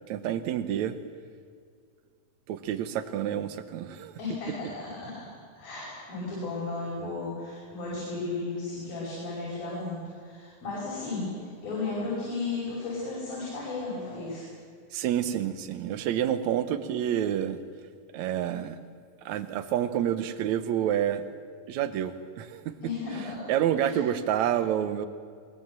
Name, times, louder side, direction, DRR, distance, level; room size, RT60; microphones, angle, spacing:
voice 1, 0.1-1.0 2.5-4.1 14.9-17.6 18.1-18.8 19.3-21.2 21.7-22.7 23.5-25.1, right 10 dB, 65° right, 12 dB, 2.0 m, -28 dB
voice 2, 4.2-5.2 5.5-14.5 22.8-23.5 23.8-24.0, left 3 dB, 90° left, -6 dB, 7.6 m, -34 dB
23.0 x 21.5 x 7.5 m, 2.1 s
omnidirectional pair, 4.0 m